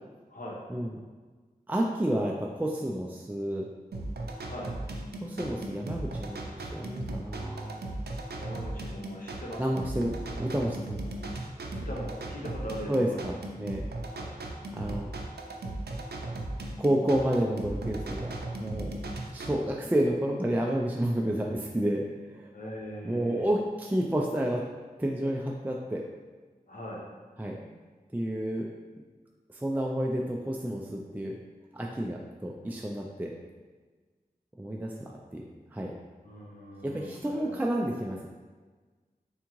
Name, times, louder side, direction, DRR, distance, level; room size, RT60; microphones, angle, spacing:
voice 1, 1.7-3.6 5.2-7.8 9.6-11.0 12.9-13.8 14.7-15.2 16.8-18.3 18.6-19.0 19.3-22.1 22.3-22.5 23.0-24.6 25.0-26.0 27.4-27.7 28.1-28.6 29.6-31.4 31.7-33.3 34.6-35.5 35.7-35.9 36.8-38.3, right 1 dB, 10° right, -1 dB, 0.3 m, -30 dB
sound 1, 3.9-19.5, right 2 dB, 90° right, 0.4 m, -37 dB
voice 2, 8.3-9.8 11.1-11.2 11.7-13.2 14.1-14.3 22.5-23.5 26.7-27.0 36.2-37.6, equal, 55° left, -4 dB, 0.9 m, -41 dB
3.6 x 3.5 x 3.0 m, 1.4 s
wide cardioid pair, 65°, 16 cm